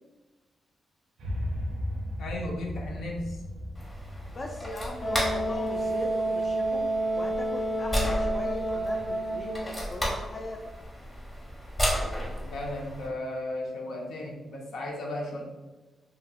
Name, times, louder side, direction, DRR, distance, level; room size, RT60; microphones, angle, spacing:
sound 1, 1.2-7.4, left 1 dB, 85° right, 0.5 m, -37 dB
voice 1, 2.2-3.4 12.4-15.4, left 1 dB, 85° left, -1 dB, 0.6 m, -35 dB
sound 2, 3.7-13.1, equal, 15° left, 0.9 m, -34 dB
voice 2, 4.3-6.9 7.1-10.6, left 1 dB, 35° left, 1 dB, 0.3 m, -39 dB
Wind instrument woodwind instrument, 5.0-9.7, right 1 dB, 65° left, 1.0 m, -29 dB
2.8 x 2.7 x 2.4 m, 1.2 s
cardioid pair, 125°, 0 cm